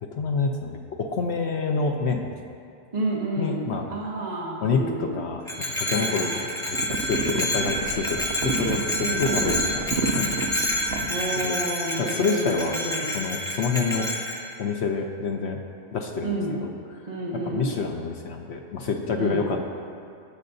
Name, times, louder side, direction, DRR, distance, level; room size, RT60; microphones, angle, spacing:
voice 1, 0.0-2.3 3.4-3.9 4.6-6.3 6.6-10.4 11.0-11.6 12.0-12.7 13.0-14.1 14.6-15.6 15.9-16.7 17.3-19.6, left 4 dB, 60° left, 3 dB, 0.8 m, -28 dB
voice 2, 2.9-5.2 5.9-6.3 9.0-9.6 11.1-13.2 16.2-16.6 17.1-17.8 19.1-19.5, right 1 dB, 35° right, -4 dB, 0.9 m, -30 dB
Bell, 5.4-14.4, left 1 dB, 5° left, 1.1 m, -28 dB
sound 1, 6.7-11.1, right 4 dB, 60° right, 0.8 m, -30 dB
19.0 x 6.6 x 2.6 m, 2.4 s
omnidirectional pair, 1.4 m